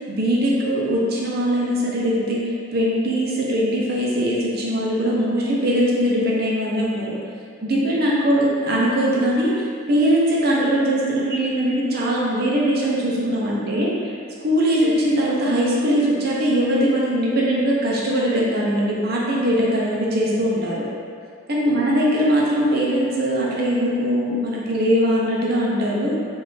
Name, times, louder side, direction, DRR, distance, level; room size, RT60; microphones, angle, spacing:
voice 1, 0.1-2.4 2.7-7.1 7.6-13.9 14.4-20.8 21.5-26.1, equal, 45° right, -4 dB, 0.6 m, -21 dB
4.0 x 2.5 x 3.2 m, 2.3 s
head